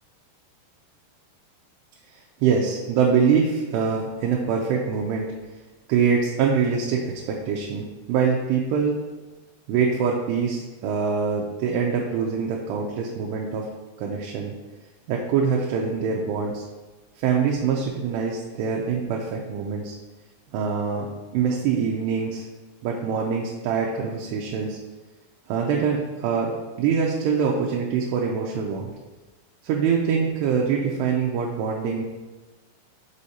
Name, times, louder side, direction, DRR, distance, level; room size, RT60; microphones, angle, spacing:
voice 1, 2.1-5.3 5.9-9.0 9.7-13.7 14.0-14.5 15.1-16.6 17.2-19.9 20.5-21.1 21.3-22.4 22.8-24.8 25.5-28.9 29.6-32.1, right 6 dB, 80° right, -1 dB, 2.6 m, -24 dB
6.4 x 5.3 x 2.8 m, 1.3 s
omnidirectional pair, 5.0 m